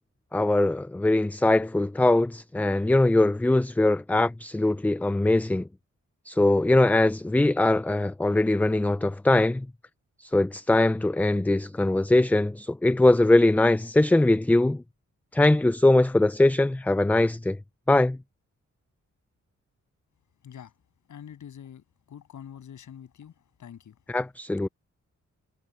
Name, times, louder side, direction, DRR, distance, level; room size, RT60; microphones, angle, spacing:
voice 1, 0.3-5.7 6.3-9.7 10.2-14.8 15.3-17.6 17.9-18.2 24.1-24.7, left 2 dB, 5° left, 0.3 m, -21 dB
voice 2, 21.1-24.0, left 9 dB, 90° left, 7.9 m, -45 dB
cardioid pair, 95°, 29 cm